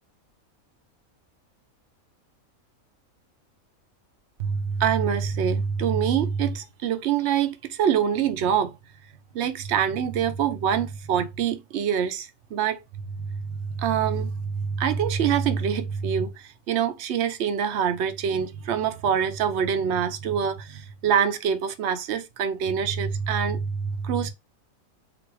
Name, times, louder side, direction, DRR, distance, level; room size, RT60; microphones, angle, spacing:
voice 1, 4.4-8.7 9.3-12.8 13.1-24.3, right 7 dB, 60° right, 0.9 m, -25 dB
4.1 x 2.6 x 4.6 m
omnidirectional pair, 1.4 m